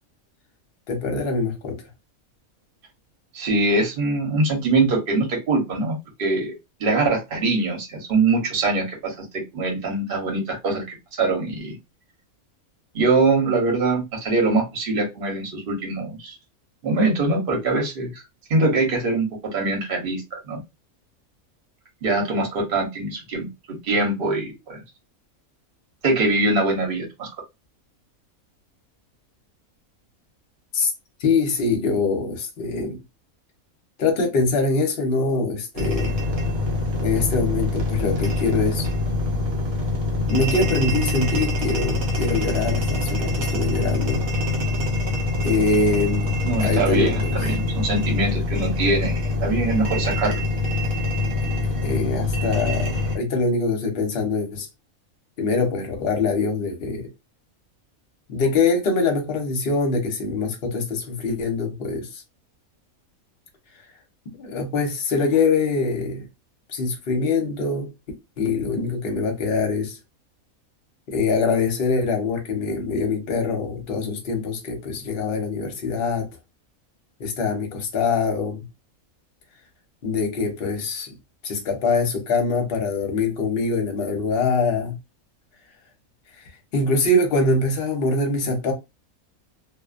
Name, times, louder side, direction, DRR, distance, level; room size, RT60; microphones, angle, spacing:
voice 1, 0.9-1.8 30.7-30.9 31.2-33.0 34.0-36.2 37.0-38.9 40.3-44.2 45.4-47.4 51.4-51.5 51.8-54.7 55.4-57.1 58.3-62.1 64.4-66.2 66.7-67.9 68.4-70.0 71.1-76.3 77.2-78.6 80.0-81.1 81.4-85.0 86.7-88.7, left 3 dB, 50° left, 0.8 m, -23 dB
voice 2, 3.3-6.5 6.8-9.2 9.5-11.8 12.9-16.4 16.8-18.1 18.5-20.6 22.0-23.5 23.8-24.8 26.0-27.3 46.4-50.4, right 3 dB, 45° right, 0.9 m, -23 dB
sound 1, 35.7-53.2, left 2 dB, 80° right, 1.1 m, -24 dB
2.4 x 2.1 x 2.4 m
omnidirectional pair, 1.5 m